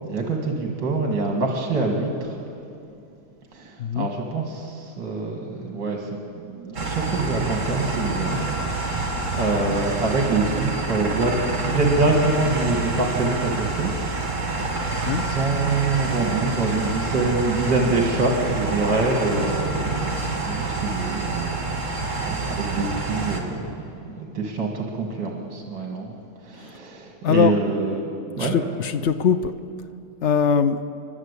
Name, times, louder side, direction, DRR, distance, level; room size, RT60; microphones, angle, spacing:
voice 1, 0.1-2.4 3.5-6.1 6.5-11.3 11.6-13.9 14.6-14.9 15.2-23.6 24.1-26.1 26.4-28.1 28.3-28.6, right 3 dB, 65° right, 1 dB, 2.7 m, -25 dB
sound 1, 6.7-23.4, right 3 dB, 40° right, 2.7 m, -27 dB
voice 2, 27.2-27.6 28.4-29.5 30.2-30.8, left 7 dB, 90° left, 9 dB, 0.6 m, -21 dB
29.5 x 12.0 x 8.2 m, 2.6 s
omnidirectional pair, 2.1 m